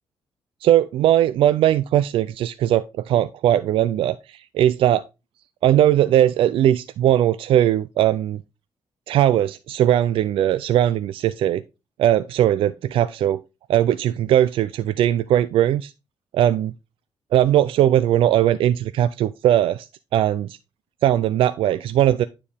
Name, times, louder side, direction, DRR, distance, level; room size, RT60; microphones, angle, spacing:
voice 1, 0.6-5.0 5.6-8.4 9.1-11.6 12.0-13.4 13.7-15.9 16.3-16.7 17.3-19.9 20.1-20.6 21.0-22.2, right 12 dB, 80° right, 0.4 m, -19 dB
9.6 x 4.4 x 3.5 m
cardioid pair, 105°, 9 cm